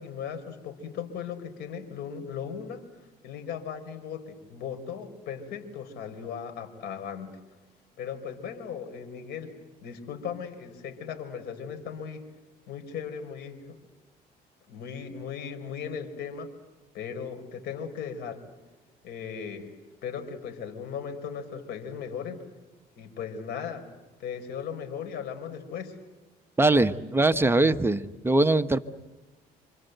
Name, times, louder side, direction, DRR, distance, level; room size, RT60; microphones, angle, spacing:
voice 1, 0.0-2.8 3.2-7.3 8.0-9.5 9.8-12.3 12.7-13.8 14.7-16.5 16.9-18.4 19.0-19.7 20.0-22.4 23.0-23.9 24.2-26.0, left 7 dB, 75° left, 7 dB, 4.7 m, -37 dB
voice 2, 26.6-28.8, right 2 dB, 15° right, 9 dB, 1.0 m, -22 dB
27.5 x 26.5 x 8.0 m, 1.2 s
cardioid pair, 110°, 17 cm